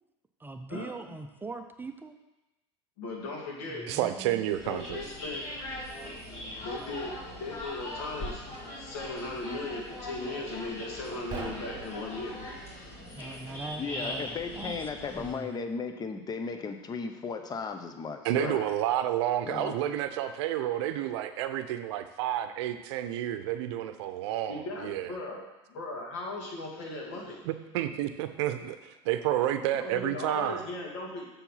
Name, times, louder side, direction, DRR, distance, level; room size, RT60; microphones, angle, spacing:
voice 1, 0.4-2.2 3.7-4.5 13.1-14.8 15.2-15.7, right 3 dB, 15° right, 7 dB, 0.5 m, -41 dB
voice 2, 3.0-3.9 4.6-5.4 6.6-8.4 8.8-12.4 18.4-18.6 24.5-25.4 25.7-27.4 29.7-31.3, left 2 dB, 75° left, -2 dB, 2.3 m, -37 dB
voice 3, 3.9-5.0 18.2-25.1 27.4-30.6, right 12 dB, 75° right, 10 dB, 0.6 m, -30 dB
sound 1, 4.5-15.3, left 1 dB, 45° left, 2.8 m, -40 dB
sound 2, 11.3-12.8, right 4 dB, 30° right, 1.7 m, -43 dB
voice 4, 13.8-18.6 19.4-19.7, left 5 dB, 30° left, 7 dB, 0.8 m, -36 dB
7.1 x 4.5 x 5.6 m, 1.0 s
supercardioid pair, 95°, 15 cm